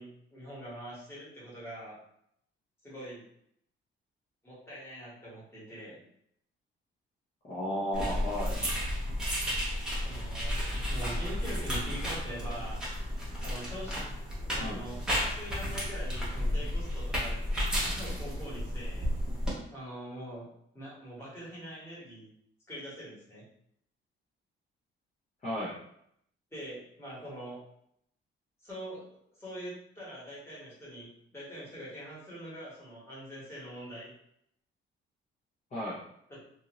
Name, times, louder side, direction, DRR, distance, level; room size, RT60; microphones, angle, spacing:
voice 1, 0.0-2.0 2.8-3.2 4.4-6.0 10.0-12.8 13.4-13.9 14.4-17.4 17.9-19.1 19.7-20.5 20.7-22.3 22.7-23.4 26.5-27.6 28.6-34.1 36.3-36.4, right 1 dB, 10° left, -8 dB, 1.3 m, -43 dB
voice 2, 7.4-8.6 14.6-14.8 25.4-25.8 35.7-36.0, equal, 35° left, -9 dB, 0.8 m, -34 dB
sound 1, 7.9-19.5, equal, 5° right, 0.8 m, -32 dB
2.6 x 2.5 x 3.0 m, 0.71 s
cardioid pair, 165°, 21 cm